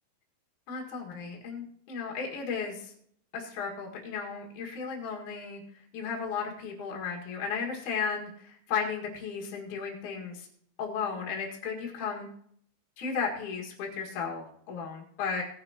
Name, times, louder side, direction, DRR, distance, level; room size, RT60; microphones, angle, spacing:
voice 1, 0.7-2.9 3.3-5.6 5.9-10.5 10.8-12.3 13.0-15.4, left 6 dB, 55° left, -1 dB, 2.8 m, -34 dB
18.0 x 9.4 x 2.9 m, 0.66 s
omnidirectional pair, 5.2 m